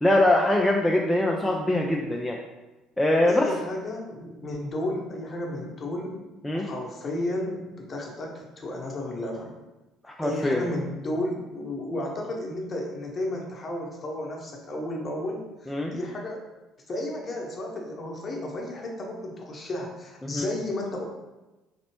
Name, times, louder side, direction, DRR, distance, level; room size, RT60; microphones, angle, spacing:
voice 1, 0.0-2.4 3.0-3.5 6.4-6.7 10.1-10.7 15.7-15.9 20.2-20.4, left 1 dB, 10° left, -1 dB, 0.4 m, -23 dB
voice 2, 3.2-6.3 6.5-9.6 10.2-16.4 16.9-21.0, left 1 dB, 30° left, -1 dB, 0.9 m, -33 dB
4.2 x 2.9 x 2.9 m, 1.1 s
figure-of-eight pair, 55°, 0 cm